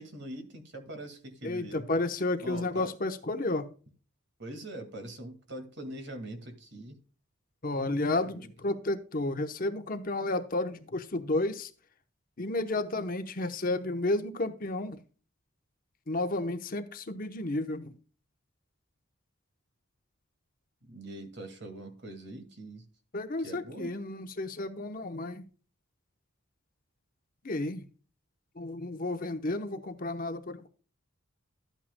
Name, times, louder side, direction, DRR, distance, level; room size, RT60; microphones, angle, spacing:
voice 1, 0.0-1.9 2.4-2.9 4.4-6.9 8.2-8.5 20.8-22.9 23.4-23.9, right 1 dB, 55° right, 7 dB, 2.0 m, -43 dB
voice 2, 1.4-3.7 7.6-11.7 12.4-15.0 16.1-17.9 23.1-25.4 27.4-27.8 28.6-30.7, left 2 dB, 40° left, 8 dB, 0.9 m, -32 dB
12.5 x 8.7 x 2.2 m, 0.38 s
head